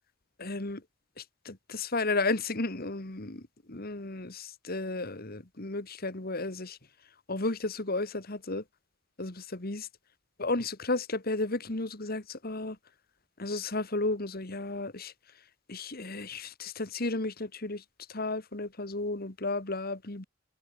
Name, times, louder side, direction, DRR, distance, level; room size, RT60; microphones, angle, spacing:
voice 1, 0.4-0.8 1.2-6.8 7.3-8.6 9.2-9.9 10.4-12.8 13.4-15.1 15.7-17.8 18.1-20.2, left 2 dB, 50° left, 2.0 m, -33 dB
head